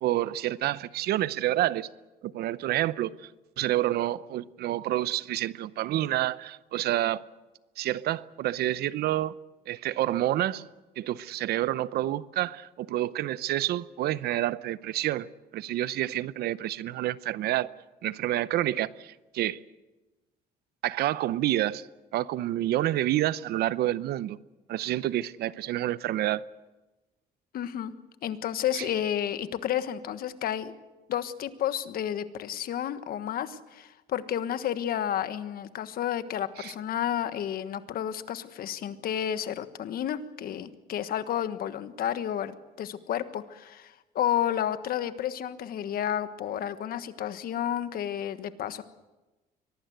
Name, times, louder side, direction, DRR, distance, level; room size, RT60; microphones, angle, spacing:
voice 1, 0.0-1.9 2.2-3.3 3.6-7.2 7.8-9.4 9.7-10.6 11.0-15.3 15.5-17.7 18.0-19.6 20.8-21.9 22.1-24.4 24.7-26.4 28.8-28.9 36.6-36.7, right 14 dB, 70° right, 18 dB, 0.7 m, -28 dB
voice 2, 27.5-27.9 28.2-30.8 31.1-48.8, left 10 dB, 60° left, 12 dB, 1.4 m, -31 dB
24.0 x 18.5 x 8.0 m, 1.1 s
cardioid pair, 110°, 17 cm